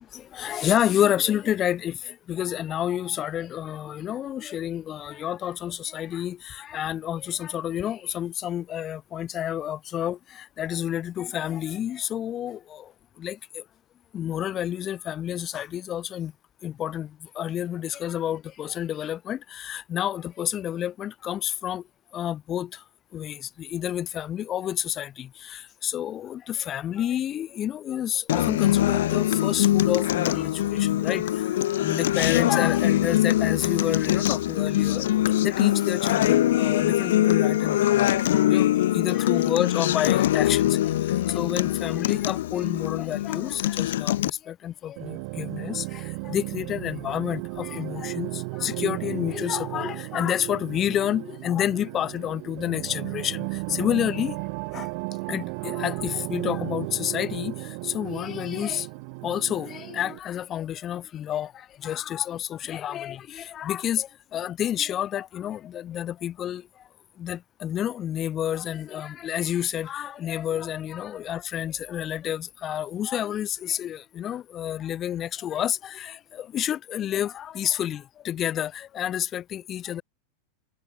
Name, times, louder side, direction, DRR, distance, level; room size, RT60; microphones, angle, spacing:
voice 1, 0.1-12.8 13.2-13.4 14.1-16.3 16.6-17.1 17.4-21.8 22.1-22.7 23.1-31.2 31.8-35.0 35.4-38.7 38.9-40.8 41.3-54.4 54.7-54.9 55.3-57.5 57.8-58.9 59.2-61.5 61.8-66.6 67.2-80.0, left 11 dB, 20° left, 6.0 m, -29 dB
Acoustic guitar, 28.3-44.3, left 13 dB, 75° left, 4.9 m, -23 dB
sound 1, 45.0-60.2, right 35 dB, 40° right, 5.9 m, -34 dB
supercardioid pair, 175°, 0 cm